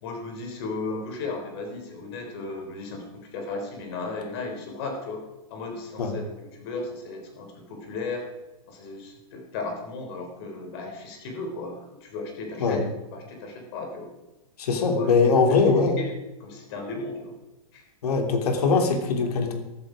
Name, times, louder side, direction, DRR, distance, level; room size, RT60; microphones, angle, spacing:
voice 1, 0.0-5.3 5.5-8.3 8.7-12.8 13.1-14.1 14.8-16.1 16.4-17.4 17.7-17.8, left 3 dB, 40° left, 3 dB, 3.7 m, -35 dB
voice 2, 14.6-16.0 18.0-19.5, left 4 dB, 85° left, 4 dB, 3.2 m, -21 dB
14.5 x 14.0 x 5.0 m, 1.0 s
supercardioid pair, 165°, 19 cm